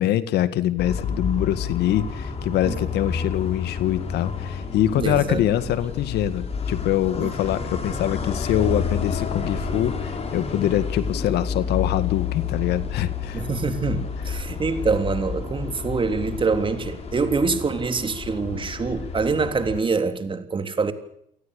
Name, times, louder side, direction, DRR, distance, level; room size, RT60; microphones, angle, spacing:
voice 1, 0.0-13.5, left 12 dB, 75° left, 1.9 m, -24 dB
sound 1, 0.8-19.8, left 5 dB, 35° left, 7.0 m, -30 dB
voice 2, 5.0-5.4 7.2-7.3 13.3-20.9, right 4 dB, 30° right, 3.4 m, -25 dB
28.5 x 19.5 x 6.7 m
cardioid pair, 110°, 17 cm